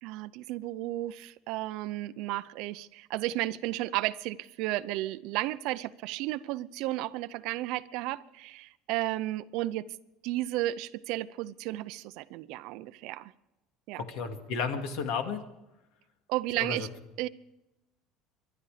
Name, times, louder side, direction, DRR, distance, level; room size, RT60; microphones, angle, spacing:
voice 1, 0.0-9.9 10.2-13.3 13.9-14.0 16.3-16.9 17.2-17.3, right 16 dB, 65° right, 16 dB, 0.6 m, -33 dB
voice 2, 13.9-15.4 16.6-16.9, left 5 dB, 70° left, 6 dB, 2.3 m, -33 dB
24.5 x 11.5 x 5.0 m, 0.95 s
cardioid pair, 160°, 0 cm